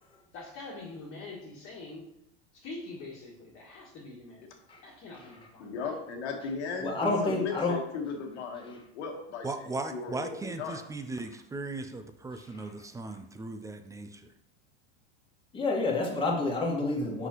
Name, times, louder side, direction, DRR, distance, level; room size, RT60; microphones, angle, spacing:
voice 1, 0.3-2.1 2.5-4.4 4.8-6.0, left 3 dB, 40° left, -6 dB, 1.5 m, -44 dB
voice 2, 5.6-10.8, left 4 dB, 90° left, 3 dB, 1.4 m, -37 dB
voice 3, 6.8-7.9 8.7-8.8 12.3-12.7 15.5-17.3, left 2 dB, 15° left, -2 dB, 1.6 m, -30 dB
voice 4, 9.4-14.3, right 3 dB, 10° right, 8 dB, 0.3 m, -38 dB
6.0 x 5.5 x 3.0 m, 0.80 s
supercardioid pair, 115°, 33 cm